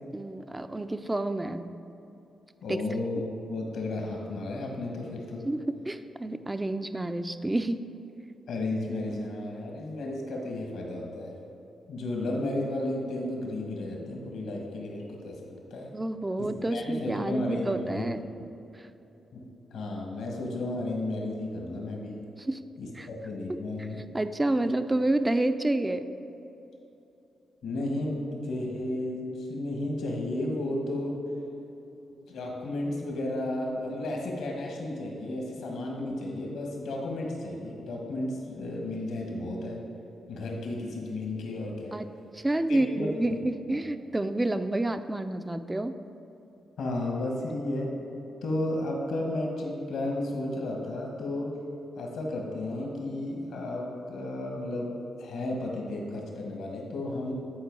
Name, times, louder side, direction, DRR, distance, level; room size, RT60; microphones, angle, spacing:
voice 1, 0.1-1.6 2.7-2.8 5.4-7.8 15.9-18.2 18.7-18.9 22.4-22.6 23.0-23.1 23.8-26.1 41.9-45.9, right 1 dB, 20° right, 10 dB, 0.4 m, -29 dB
voice 2, 2.6-5.5 8.5-11.3 11.9-15.9 16.4-18.2 19.3-22.2 22.8-24.0 27.6-31.3 32.3-39.8 40.3-42.0 42.7-43.3 43.7-43.8 46.8-47.9 48.4-51.6 52.0-54.9 55.2-57.3, left 1 dB, 80° left, 0 dB, 1.3 m, -33 dB
9.5 x 4.5 x 4.6 m, 3.0 s
supercardioid pair, 55°, 0 cm